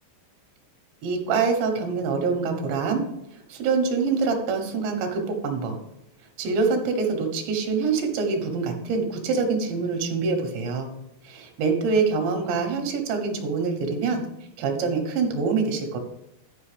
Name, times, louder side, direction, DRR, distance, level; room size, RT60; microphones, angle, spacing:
voice 1, 1.0-3.0 3.3-5.8 6.4-10.9 11.2-14.2 14.6-16.0, right 4 dB, 90° right, 4 dB, 3.6 m, -25 dB
11.0 x 5.3 x 5.0 m, 0.83 s
omnidirectional pair, 5.0 m